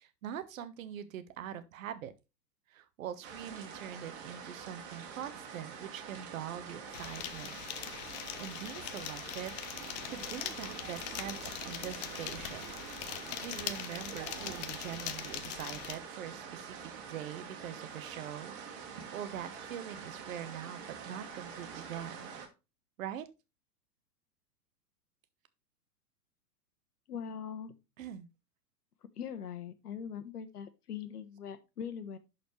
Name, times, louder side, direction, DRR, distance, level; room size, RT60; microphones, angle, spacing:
voice 1, 0.0-2.1 2.7-7.6 8.4-12.6 13.4-18.6 19.1-22.3 23.0-23.3 28.0-28.3, right 10 dB, 55° right, 1.0 m, -43 dB
sound 1, 3.2-22.5, right 6 dB, 40° right, 2.0 m, -46 dB
sound 2, 6.9-16.0, left 12 dB, 30° left, 0.5 m, -42 dB
sound 3, 9.8-15.2, right 8 dB, 20° right, 0.9 m, -51 dB
voice 2, 27.1-27.7 29.2-32.2, left 7 dB, 65° left, 1.2 m, -41 dB
11.5 x 4.3 x 3.1 m
figure-of-eight pair, 105°, 48 cm